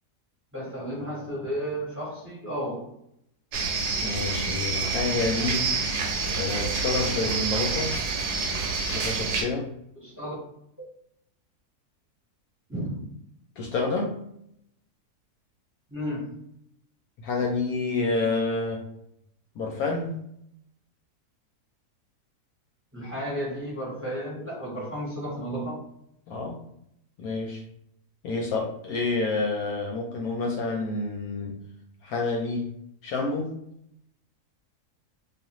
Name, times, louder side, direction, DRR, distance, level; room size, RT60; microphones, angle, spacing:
voice 1, 0.5-2.9 9.9-10.3 12.7-13.1 15.9-16.4 22.9-25.8, equal, 10° right, -6 dB, 0.9 m, -33 dB
sound 1, 3.5-9.4, right 4 dB, 80° right, 1.1 m, -28 dB
voice 2, 4.0-5.7 6.3-7.9 8.9-9.7 13.6-14.2 17.2-18.8 19.6-20.2 26.3-26.6 27.2-27.6 28.2-31.6 32.0-32.7 33.0-33.5, left 3 dB, 75° left, 1 dB, 1.0 m, -28 dB
2.5 x 2.4 x 2.9 m, 0.74 s
omnidirectional pair, 1.7 m